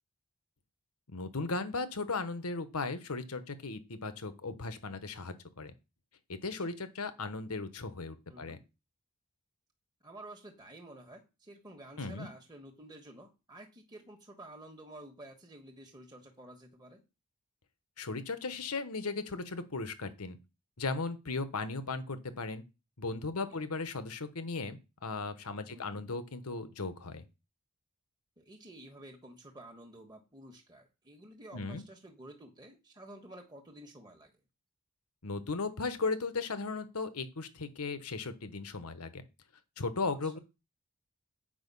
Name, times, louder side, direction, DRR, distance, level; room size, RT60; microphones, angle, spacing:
voice 1, 1.1-5.7 6.3-8.6 12.0-12.3 18.0-20.4 20.8-22.6 23.0-27.2 31.5-31.8 35.2-39.2 39.8-40.4, left 3 dB, 85° left, 11 dB, 1.2 m, -37 dB
voice 2, 10.0-17.0 23.4-23.7 25.7-26.0 28.4-34.3 40.2-40.4, right 1 dB, 20° right, 1 dB, 1.3 m, -51 dB
8.8 x 5.4 x 5.5 m, 0.28 s
head